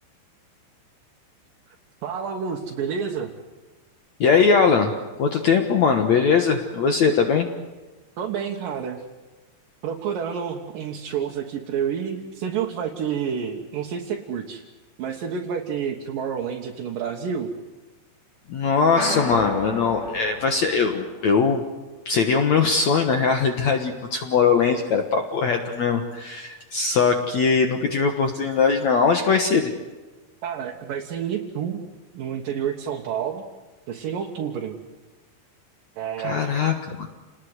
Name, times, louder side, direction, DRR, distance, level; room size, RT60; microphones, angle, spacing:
voice 1, 2.0-3.3 8.2-9.0 9.8-14.6 15.0-17.5 30.4-31.8 32.1-33.5 33.9-34.8 36.0-36.6, right 7 dB, 60° right, 0 dB, 2.5 m, -29 dB
voice 2, 4.2-7.5 18.5-21.6 22.0-29.7 36.2-37.1, left 5 dB, 80° left, 5 dB, 1.6 m, -21 dB
sound 1, 19.0-21.4, left 3 dB, 25° left, 4.0 m, -31 dB
29.0 x 20.0 x 8.0 m, 1.2 s
omnidirectional pair, 5.3 m